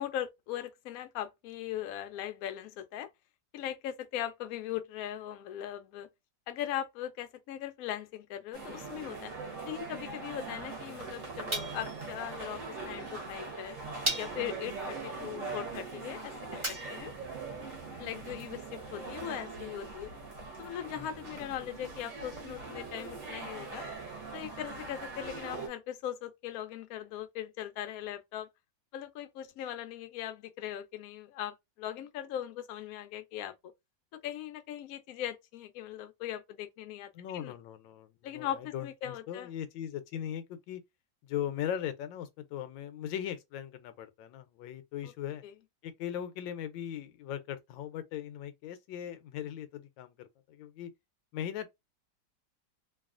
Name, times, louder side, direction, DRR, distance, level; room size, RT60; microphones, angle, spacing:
voice 1, 0.0-3.1 3.5-6.1 6.5-9.3 9.6-13.8 14.2-17.1 18.0-20.1 20.6-23.8 24.3-28.5 28.9-33.7 34.2-37.5 38.2-39.5 45.4-45.5, left 11 dB, 70° left, 0.8 m, -39 dB
sound 1, 8.5-25.7, right 4 dB, 55° right, 1.1 m, -42 dB
sound 2, 11.5-12.1 13.1-13.2 14.0-14.6 16.6-17.2, right 1 dB, 25° right, 0.6 m, -35 dB
voice 2, 37.1-40.8 41.2-45.4 45.8-50.9 51.3-51.7, left 10 dB, 85° left, 1.3 m, -39 dB
3.1 x 2.3 x 2.4 m
omnidirectional pair, 2.0 m